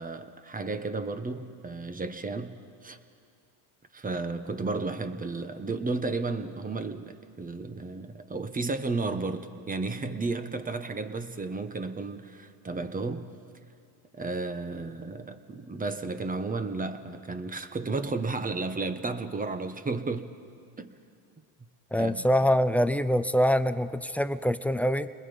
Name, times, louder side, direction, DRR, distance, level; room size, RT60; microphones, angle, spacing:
voice 1, 0.0-3.0 3.9-13.3 14.1-20.3 20.8-21.0 22.0-22.2, right 3 dB, 20° right, 9 dB, 1.3 m, -33 dB
voice 2, 21.9-25.1, equal, 5° left, 12 dB, 0.6 m, -24 dB
29.5 x 21.0 x 5.5 m, 2.5 s
supercardioid pair, 100°, 43 cm